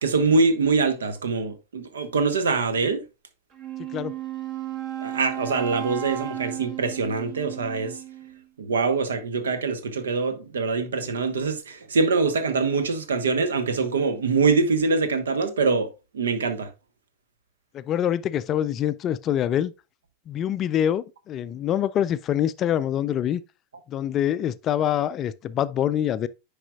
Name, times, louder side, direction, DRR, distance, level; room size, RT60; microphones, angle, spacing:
voice 1, 0.0-3.0 5.0-8.0 8.6-16.7, right 4 dB, 65° right, 0.9 m, -24 dB
Wind instrument woodwind instrument, 3.5-8.4, right 11 dB, 35° right, 1.2 m, -34 dB
voice 2, 17.7-19.7 20.3-23.4 23.9-26.3, left 10 dB, 30° left, 0.3 m, -25 dB
9.9 x 4.8 x 2.3 m
figure-of-eight pair, 90°, 0 cm